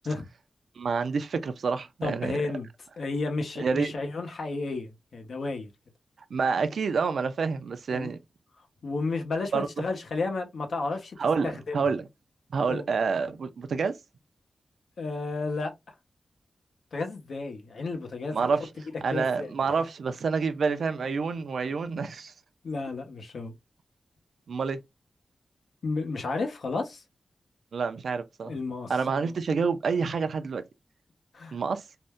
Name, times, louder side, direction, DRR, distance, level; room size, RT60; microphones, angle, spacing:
voice 1, 0.8-2.4 3.6-4.0 6.3-8.2 9.5-9.8 11.2-12.0 12.5-14.0 18.3-18.7 19.0-22.3 24.5-24.8 27.7-28.5 28.9-30.6 31.5-31.8, right 5 dB, 75° right, 0.4 m, -28 dB
voice 2, 2.0-2.7 3.0-5.7 7.9-8.1 8.8-11.2 11.4-11.9 12.7-12.8 15.0-15.7 16.9-18.5 19.1-19.5 22.6-23.5 25.8-27.0 28.4-28.9 31.3-31.5, left 3 dB, 70° left, 0.9 m, -32 dB
2.6 x 2.1 x 3.4 m
wide cardioid pair, 170°, 0 cm